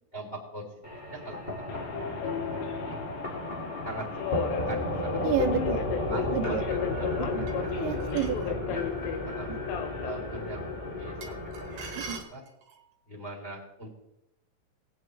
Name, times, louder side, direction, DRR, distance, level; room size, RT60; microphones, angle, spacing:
voice 1, 0.1-0.7 1.1-3.0 3.8-5.2 6.1-7.7 8.4-8.9 9.2-9.5 10.0-12.4 13.1-14.0, right 2 dB, 20° left, 0 dB, 2.1 m, -42 dB
sound 1, 0.8-12.2, left 2 dB, 45° left, 0.6 m, -33 dB
Subway metro underground, 1.7-11.4, left 8 dB, 90° left, 2.9 m, -36 dB
voice 2, 5.2-5.9 6.3-6.6 7.3-7.5 7.7-8.4 9.5-9.6 12.0-12.2, right 13 dB, 85° right, 10 dB, 2.5 m, -31 dB
sound 2, 7.5-8.5 11.2-12.9, right 5 dB, 65° right, 2.1 m, -43 dB
19.0 x 8.8 x 3.2 m, 0.87 s
omnidirectional pair, 4.7 m